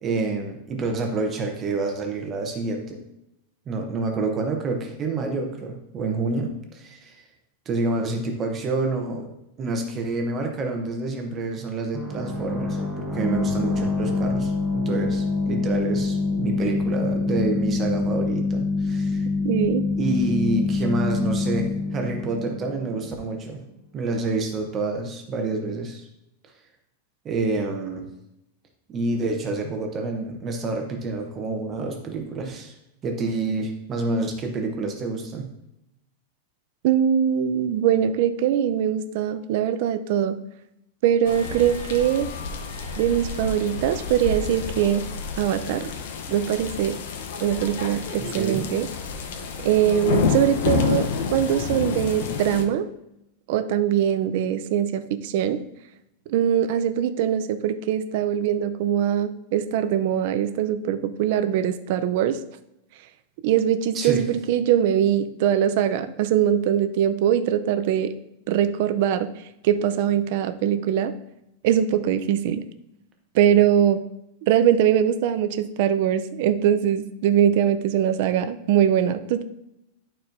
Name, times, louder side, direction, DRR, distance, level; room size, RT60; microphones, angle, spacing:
voice 1, 0.0-3.0 3.7-7.2 7.7-9.3 9.6-19.2 20.0-23.6 23.9-26.0 27.2-28.1 28.9-32.7 33.0-35.5 48.2-48.7 63.9-64.2, right 3 dB, 20° right, 3 dB, 0.7 m, -28 dB
sound 1, 11.9-23.4, left 3 dB, 5° left, 1.0 m, -26 dB
voice 2, 19.4-19.8 36.8-40.4 41.0-42.3 43.0-45.1 45.4-45.9 46.3-47.0 47.4-48.9 49.6-52.9 53.5-55.6 56.3-62.4 63.4-68.1 68.5-69.3 69.6-71.1 71.6-72.6 73.3-74.0 74.5-79.4, right 10 dB, 50° right, 10 dB, 0.5 m, -22 dB
sound 2, 41.2-52.6, left 5 dB, 65° left, 0.8 m, -29 dB
11.0 x 4.3 x 2.6 m, 0.86 s
supercardioid pair, 170°, 0 cm